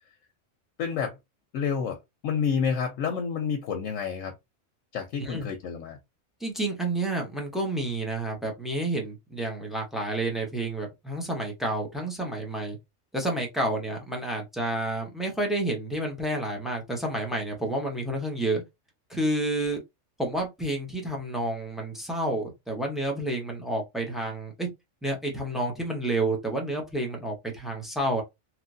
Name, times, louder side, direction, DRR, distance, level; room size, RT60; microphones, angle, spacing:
voice 1, 0.8-1.1 1.5-2.0 2.2-4.3 4.9-6.0, left 6 dB, 90° left, 1.0 m, -29 dB
voice 2, 6.4-12.8 13.1-18.6 19.1-19.8 20.2-24.7 25.0-28.2, right 1 dB, ahead, 0.6 m, -30 dB
3.1 x 2.4 x 2.5 m
omnidirectional pair, 1.3 m